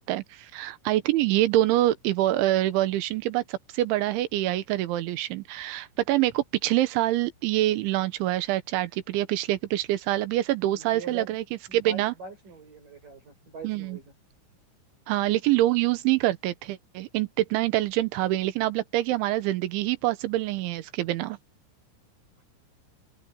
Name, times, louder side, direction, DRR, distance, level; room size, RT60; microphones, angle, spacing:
voice 1, 0.0-11.4 11.7-12.1 13.6-14.0 15.1-21.4, right 15 dB, 75° right, 3.4 m, -25 dB
voice 2, 10.8-11.4 11.7-14.1, right 3 dB, 45° right, 8.9 m, -43 dB
open air
omnidirectional pair, 5.6 m